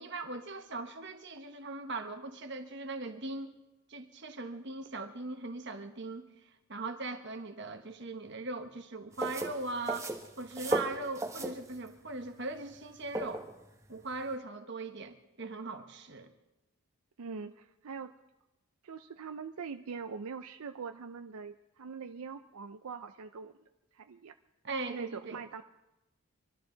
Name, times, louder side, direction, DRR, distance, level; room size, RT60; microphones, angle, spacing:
voice 1, 0.0-3.5 3.9-6.3 6.7-13.5 13.9-16.3 24.6-25.4, right 3 dB, 50° right, 7 dB, 1.2 m, -40 dB
sound 1, 9.1-14.3, right 2 dB, 15° right, 1.1 m, -37 dB
voice 2, 17.2-18.1 18.8-23.5 23.9-24.3 24.9-25.6, right 5 dB, 80° right, 8 dB, 0.5 m, -43 dB
24.5 x 13.0 x 3.9 m, 0.97 s
head